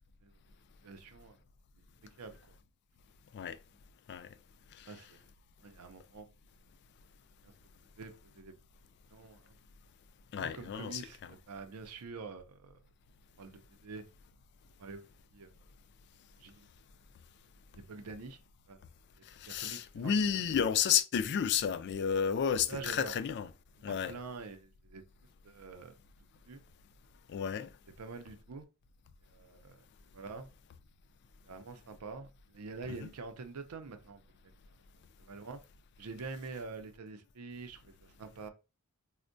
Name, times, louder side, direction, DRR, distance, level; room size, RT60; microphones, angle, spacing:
voice 1, 0.8-1.4 2.2-2.4 4.9-5.2 5.6-6.3 7.4-7.5 8.0-8.6 9.1-9.5 10.4-12.8 13.4-14.0 14.8-15.1 15.3-15.6 16.4-16.7 17.8-18.4 18.7-18.8 19.5-20.7 22.7-23.1 23.8-25.0 25.4-25.9 26.5-26.6 28.0-28.6 29.3-29.8 30.1-30.5 31.4-34.5 35.2-35.6 36.0-38.5, right 4 dB, 90° right, 0.5 m, -46 dB
voice 2, 10.3-11.0 19.3-23.5 23.8-24.1 27.3-27.7 33.0-33.1, left 7 dB, 50° left, 0.3 m, -31 dB
4.3 x 2.1 x 2.5 m
head